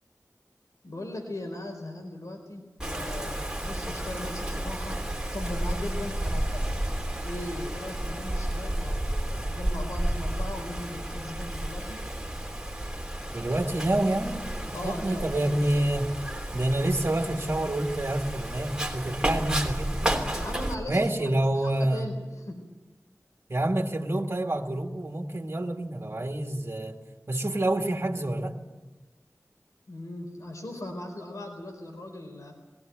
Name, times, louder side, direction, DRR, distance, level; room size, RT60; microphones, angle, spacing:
voice 1, 0.8-5.0 5.3-6.8 7.2-12.0 14.7-15.4 20.3-21.1 21.6-22.6 29.9-32.6, left 1 dB, 75° left, 3 dB, 4.0 m, -38 dB
Wind, 2.8-20.7, right 1 dB, 15° right, 3.2 m, -32 dB
voice 2, 13.3-16.1 16.5-20.1 20.9-22.0 23.5-27.0 27.3-28.6, right 1 dB, 45° right, 2 dB, 2.2 m, -28 dB
20.5 x 17.5 x 9.3 m, 1.2 s
wide cardioid pair, 65°, 6 cm